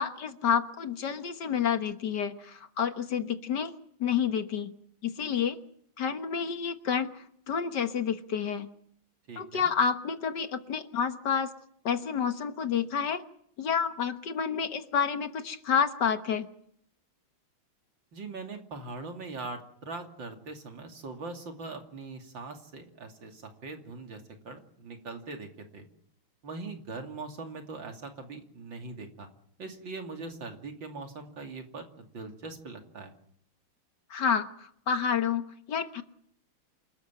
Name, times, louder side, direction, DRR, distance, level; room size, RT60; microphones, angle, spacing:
voice 1, 0.0-3.7 4.0-4.7 5.0-5.6 6.0-8.7 9.4-11.5 11.9-13.2 13.6-16.5 34.1-36.0, left 7 dB, 60° left, 9 dB, 1.9 m, -29 dB
voice 2, 9.3-9.7 18.1-25.8 26.4-29.3 29.6-33.1, right 3 dB, 70° right, 5 dB, 3.4 m, -41 dB
28.0 x 13.5 x 8.8 m, 0.67 s
omnidirectional pair, 2.2 m